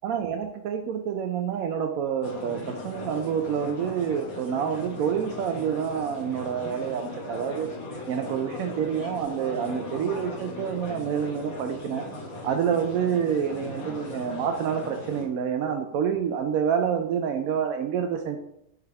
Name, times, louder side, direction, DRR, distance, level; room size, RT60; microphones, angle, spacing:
voice 1, 0.0-7.7 8.1-12.1 12.4-18.4, right 7 dB, 85° right, 4 dB, 1.0 m, -28 dB
sound 1, 2.2-15.3, left 2 dB, 90° left, 1.7 m, -38 dB
8.4 x 3.3 x 3.5 m, 0.75 s
omnidirectional pair, 1.4 m